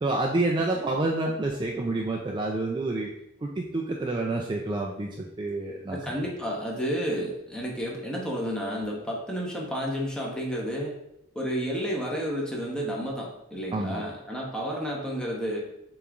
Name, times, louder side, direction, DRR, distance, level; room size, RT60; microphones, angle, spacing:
voice 1, 0.0-3.1 3.4-6.0 13.7-14.0, right 2 dB, 25° right, 0 dB, 0.4 m, -28 dB
voice 2, 5.9-10.9 11.3-15.6, equal, 5° left, -3 dB, 0.9 m, -31 dB
6.8 x 3.0 x 2.5 m, 0.80 s
head